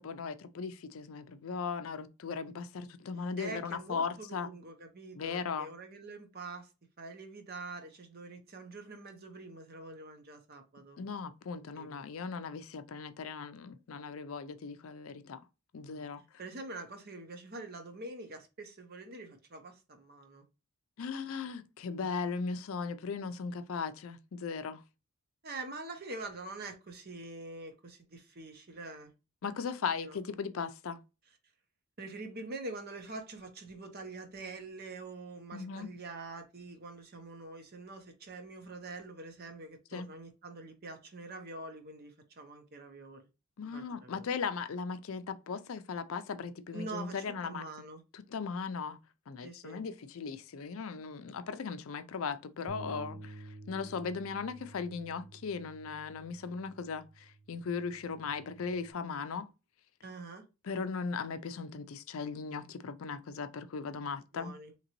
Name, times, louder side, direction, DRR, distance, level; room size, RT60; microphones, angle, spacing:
voice 1, 0.0-4.5 5.2-5.7 11.0-15.4 15.7-16.2 21.0-24.8 29.4-31.0 35.5-35.9 39.9-40.1 43.6-47.6 48.1-49.0 49.3-59.5 60.6-64.5, left 5 dB, 65° left, 0.4 m, -38 dB
voice 2, 3.4-6.7 7.0-11.0 11.8-11.9 15.7-16.0 16.4-20.4 25.4-29.1 30.0-30.2 32.0-43.3 43.6-44.3 46.7-48.0 49.4-49.8 60.0-60.4 64.3-64.7, right 2 dB, 45° right, 0.7 m, -45 dB
Bass guitar, 52.7-58.9, right 2 dB, 10° right, 0.5 m, -51 dB
3.8 x 2.9 x 3.0 m
head